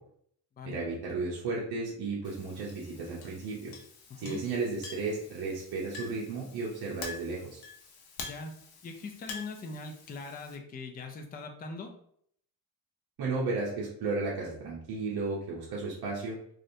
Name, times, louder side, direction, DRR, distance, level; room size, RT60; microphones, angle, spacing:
voice 1, 0.6-3.7 4.2-7.6 13.2-16.4, right 3 dB, 70° right, -5 dB, 0.8 m, -34 dB
Chink clink, 2.2-10.6, left 4 dB, 65° left, 0.8 m, -47 dB
voice 2, 4.1-4.4 8.3-8.5 8.8-11.9, left 3 dB, 25° left, 4 dB, 0.4 m, -41 dB
3.2 x 2.5 x 2.6 m, 0.66 s
cardioid pair, 130°, 39 cm